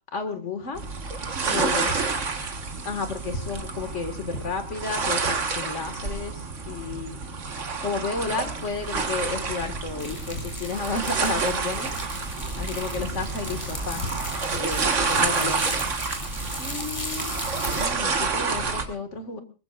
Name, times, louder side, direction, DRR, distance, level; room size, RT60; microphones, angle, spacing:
voice 1, 0.1-0.8 1.5-2.0 2.9-7.2 7.8-11.9 12.6-14.2 14.5-15.7 16.6-17.4 17.7-19.4, left 4 dB, 65° left, 7 dB, 2.3 m, -32 dB
sound 1, 0.8-18.9, right 4 dB, 70° right, 1.9 m, -29 dB
sound 2, 8.6-16.5, equal, 10° right, 7.2 m, -40 dB
sound 3, 10.0-17.8, left 1 dB, 25° left, 4.8 m, -37 dB
22.0 x 20.0 x 2.5 m, 0.33 s
omnidirectional pair, 1.3 m